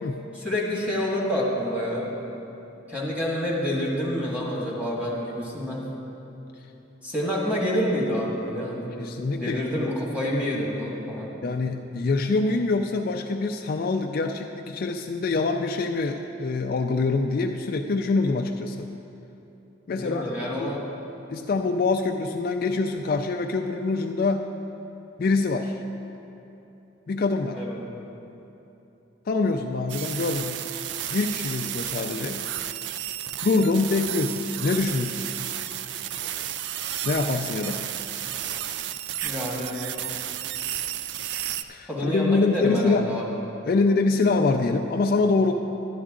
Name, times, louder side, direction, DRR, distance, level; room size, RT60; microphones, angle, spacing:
voice 1, 0.3-2.1 2.9-5.8 7.0-8.9 9.3-11.4 19.9-20.9 27.5-27.8 39.2-39.8 41.9-43.3, equal, 5° right, -5 dB, 1.7 m, -28 dB
voice 2, 9.0-9.6 11.4-18.9 19.9-20.3 20.6-20.7 21.3-24.4 25.2-25.8 27.1-27.6 29.3-30.6 31.1-32.4 33.4-35.3 37.1-37.8 41.7-43.1 43.6-45.5, left 3 dB, 50° left, 4 dB, 0.3 m, -25 dB
sound 1, 29.9-41.6, right 11 dB, 60° right, 0.3 m, -32 dB
11.0 x 11.0 x 3.7 m, 3.0 s
head